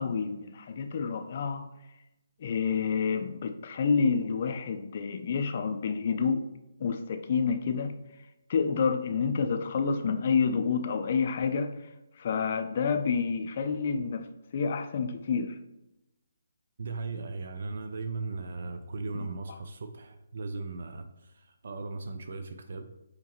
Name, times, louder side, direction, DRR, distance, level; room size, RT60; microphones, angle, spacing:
voice 1, 0.0-1.7 2.4-6.4 6.8-8.0 8.5-11.8 12.2-14.3 14.5-15.6, left 5 dB, 45° left, 0.4 m, -28 dB
voice 2, 16.8-22.9, right 3 dB, 60° right, 0.4 m, -37 dB
4.7 x 2.9 x 2.9 m
hypercardioid pair, 150°, 0 cm